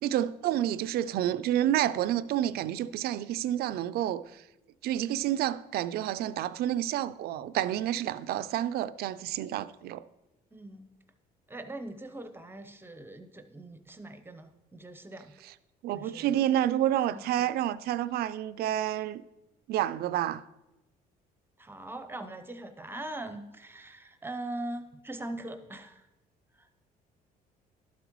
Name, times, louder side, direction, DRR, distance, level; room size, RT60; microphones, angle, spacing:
voice 1, 0.0-4.4 4.8-10.0 15.8-19.2 19.7-20.4, right 12 dB, 65° right, 0.4 m, -29 dB
voice 2, 10.5-10.9 11.5-15.3 15.9-16.4 17.1-17.5 21.6-26.0 26.5-26.7, right 1 dB, 15° right, 0.7 m, -41 dB
12.0 x 8.0 x 3.0 m
cardioid pair, 110°, 17 cm